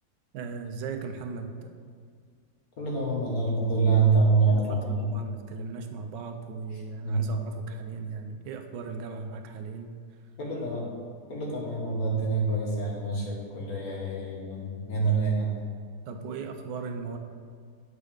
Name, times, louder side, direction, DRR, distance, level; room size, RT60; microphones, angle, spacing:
voice 1, 0.3-1.7 4.5-9.9 16.1-17.2, right 5 dB, 85° right, 6 dB, 1.3 m, -38 dB
voice 2, 2.8-5.1 7.0-7.4 10.4-10.9 11.3-15.5, right 4 dB, 55° left, -3 dB, 2.0 m, -26 dB
8.2 x 5.0 x 5.0 m, 2.1 s
omnidirectional pair, 1.9 m